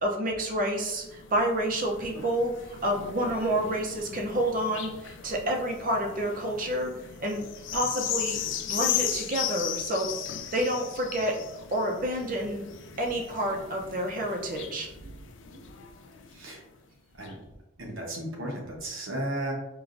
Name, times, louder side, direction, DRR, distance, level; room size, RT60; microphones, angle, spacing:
voice 1, 0.0-6.9 7.2-7.4 7.7-10.1 10.5-11.4 11.7-12.6 13.0-15.1 17.8-17.9, right 1 dB, 40° right, 1 dB, 0.6 m, -29 dB
sound 1, 0.8-16.6 17.2-17.3, left 9 dB, 60° left, 0.4 m, -37 dB
voice 2, 17.8-19.5, right 1 dB, 75° right, -1 dB, 1.0 m, -34 dB
4.6 x 3.0 x 2.5 m, 0.94 s
head